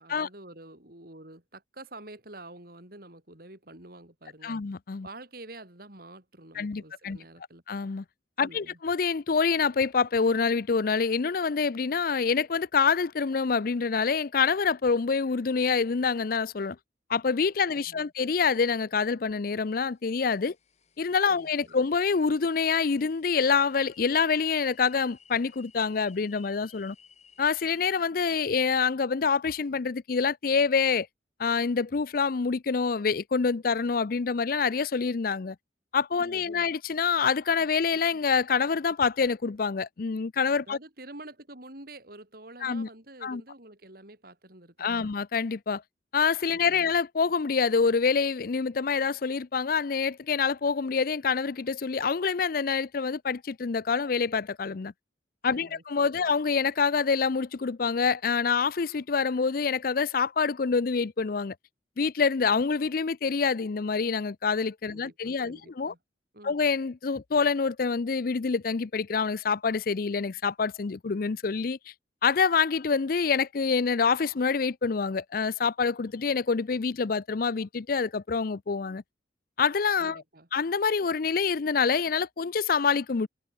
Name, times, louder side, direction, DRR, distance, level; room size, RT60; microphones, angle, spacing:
voice 1, 0.0-4.6 5.0-7.6 8.4-8.8 17.6-18.1 21.3-21.9 36.2-36.7 40.7-45.1 46.5-46.9 55.5-56.3 64.9-66.0 66.3-66.6 80.0-80.5, right 2 dB, 55° right, 4.7 m, -48 dB
voice 2, 4.4-5.1 6.6-7.2 7.7-8.0 8.4-16.8 17.1-20.5 21.0-27.0 27.4-31.1 31.4-35.6 35.9-40.8 42.6-42.9 43.2-43.4 44.8-45.8 46.1-54.9 55.4-61.5 62.0-65.9 66.4-71.8 72.2-79.0 79.6-80.2 80.5-83.3, left 5 dB, 55° left, 0.5 m, -26 dB
sound 1, 19.9-28.1, left 7 dB, 40° left, 3.4 m, -58 dB
head